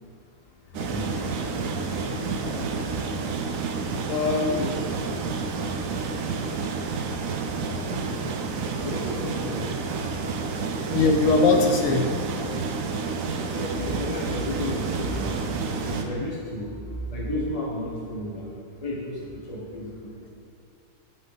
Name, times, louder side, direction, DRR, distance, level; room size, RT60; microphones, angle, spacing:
sound 1, 0.7-16.0, right 4 dB, 65° right, 0.9 m, -29 dB
voice 1, 0.8-1.2 1.9-2.7 4.5-4.7 8.8-9.7 13.4-16.7 17.1-18.5 18.8-20.1, left 1 dB, 40° left, -3 dB, 0.5 m, -33 dB
voice 2, 4.0-4.6 7.6-8.2 10.1-10.3 10.7-12.1, left 3 dB, 65° left, 3 dB, 0.8 m, -22 dB
8.9 x 6.0 x 3.9 m, 2.4 s
omnidirectional pair, 1.9 m